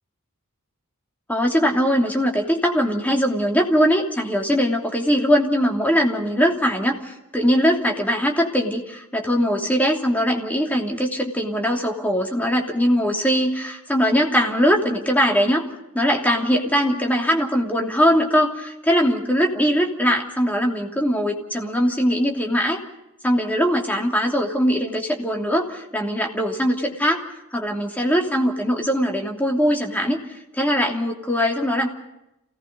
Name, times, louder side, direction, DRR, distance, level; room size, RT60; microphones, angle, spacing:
voice 1, 1.3-15.7 15.9-22.8 23.2-27.2 27.5-31.9, equal, 5° left, 0 dB, 2.9 m, -21 dB
28.0 x 18.5 x 5.4 m, 0.87 s
head